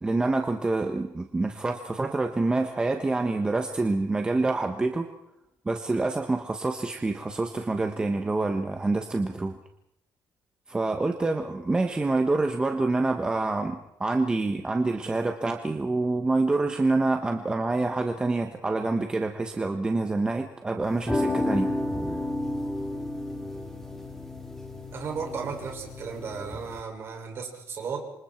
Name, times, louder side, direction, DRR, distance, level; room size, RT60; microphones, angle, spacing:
voice 1, 0.0-5.1 5.6-9.6 10.7-21.7, right 3 dB, 15° right, 4 dB, 1.3 m, -26 dB
sound 1, 20.8-26.8, left 1 dB, 5° left, 3.7 m, -31 dB
voice 2, 24.9-28.0, right 5 dB, 40° right, 2 dB, 6.4 m, -35 dB
27.5 x 26.0 x 4.6 m, 0.81 s
cardioid pair, 170°, 6 cm